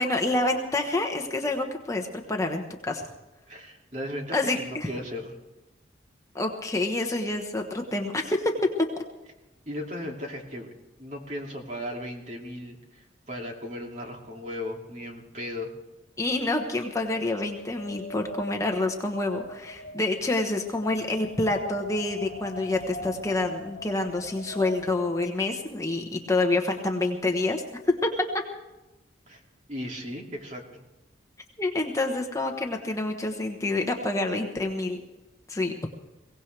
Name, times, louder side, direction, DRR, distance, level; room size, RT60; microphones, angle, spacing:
voice 1, 0.0-3.1 4.3-4.9 6.3-8.5 9.0-9.1 16.2-27.6 31.6-35.0 35.5-35.8, left 2 dB, 15° left, 3 dB, 1.2 m, -27 dB
voice 2, 3.5-5.4 9.7-10.7 11.0-15.7 29.3-29.4 29.7-30.8, left 1 dB, 40° right, 1 dB, 2.6 m, -36 dB
Wind, 16.2-25.4, left 1 dB, 45° left, 3.5 m, -43 dB
22.5 x 17.5 x 3.4 m, 1.0 s
head